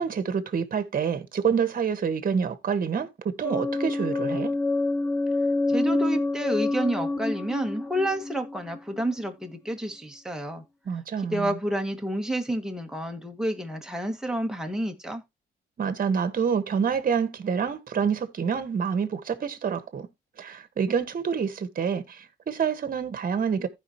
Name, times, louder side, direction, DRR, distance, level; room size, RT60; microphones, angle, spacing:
voice 1, 0.0-4.5 10.8-11.6 15.8-20.1 20.4-23.7, right 6 dB, 45° right, 1.4 m, -27 dB
sound 1, 3.4-9.3, left 2 dB, 15° left, 0.4 m, -27 dB
voice 2, 5.7-10.6 11.2-15.2, right 1 dB, 5° right, 1.8 m, -29 dB
15.0 x 5.2 x 2.9 m
cardioid pair, 90°, 20 cm